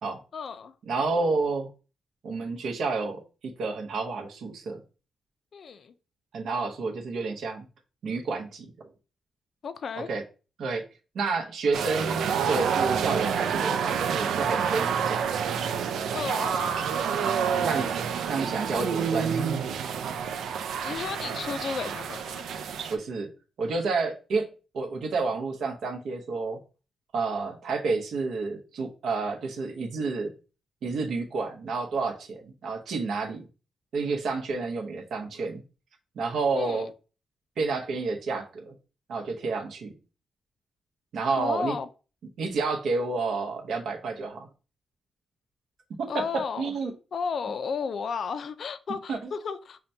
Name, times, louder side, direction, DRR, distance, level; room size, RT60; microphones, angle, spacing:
voice 1, 0.3-0.8 5.5-5.9 9.6-10.1 16.1-16.9 20.8-22.4 36.5-36.9 41.3-41.9 46.1-46.7 47.1-49.8, left 5 dB, 50° left, 0.3 m, -33 dB
voice 2, 0.9-1.7 2.2-3.2 3.6-4.8 6.3-7.7 8.0-8.7 10.0-10.2 10.6-10.8 11.1-15.3 17.6-17.9 18.3-19.4 22.9-23.3 23.6-24.5 24.7-26.6 27.1-30.3 30.8-33.5 33.9-35.6 36.2-36.9 37.6-38.7 39.1-39.9 41.1-41.7 42.4-44.5 45.9-46.9 49.1-49.3, right 4 dB, 65° right, 0.7 m, -30 dB
sound 1, 11.7-23.0, right 7 dB, 85° right, 0.4 m, -28 dB
5.7 x 2.2 x 2.7 m
wide cardioid pair, 155°, 0 cm